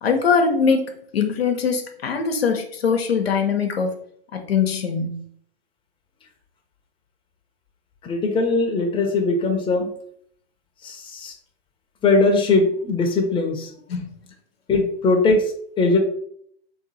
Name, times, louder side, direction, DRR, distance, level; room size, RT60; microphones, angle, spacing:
voice 1, 0.0-3.9 4.3-5.2 13.9-14.1, left 5 dB, 80° left, 3 dB, 1.0 m, -22 dB
voice 2, 8.0-9.9 10.8-11.3 12.0-13.7 14.7-16.0, left 3 dB, 15° left, 2 dB, 1.0 m, -20 dB
3.7 x 3.2 x 4.2 m, 0.64 s
hypercardioid pair, 110°, 30 cm